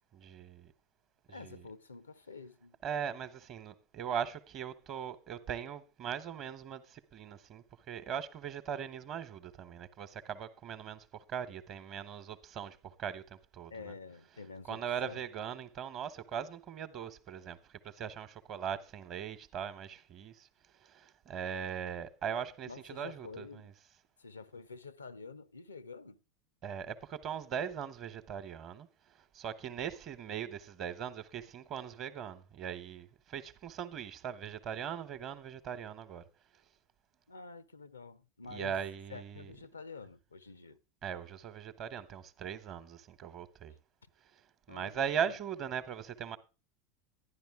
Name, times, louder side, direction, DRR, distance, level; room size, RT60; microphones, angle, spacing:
voice 1, 0.1-0.7 1.3-1.6 2.8-13.9 14.7-17.6 17.8-20.5 20.8-23.7 26.6-28.9 29.3-36.2 38.5-39.5 41.0-43.7 44.7-46.4, right 8 dB, 40° right, 1.0 m, -40 dB
voice 2, 1.3-2.8 13.7-15.2 22.7-23.7 24.2-26.2 37.3-38.8 39.1-40.8 44.7-45.1, left 4 dB, 85° left, 0.5 m, -48 dB
11.5 x 10.5 x 3.6 m
figure-of-eight pair, 80°, 0 cm